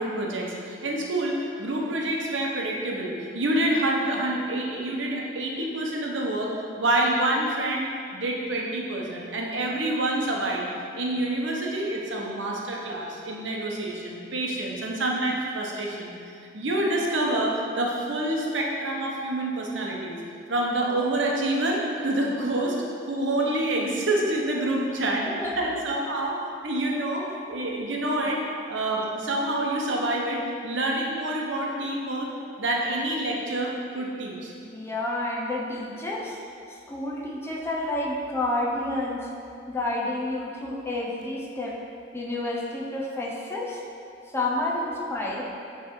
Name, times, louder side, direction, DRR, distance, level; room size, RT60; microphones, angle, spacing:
voice 1, 0.0-10.7 10.9-16.1 16.5-20.2 20.5-22.8 23.1-25.3 25.6-26.4 26.6-28.4 28.7-32.3 32.6-34.5, right 1 dB, 75° right, -2 dB, 0.9 m, -27 dB
voice 2, 25.2-25.6 34.7-36.4 36.7-39.3 39.7-41.8 42.1-43.8 44.3-45.4, left 2 dB, 15° left, -3 dB, 0.7 m, -30 dB
7.1 x 3.3 x 4.7 m, 2.5 s
head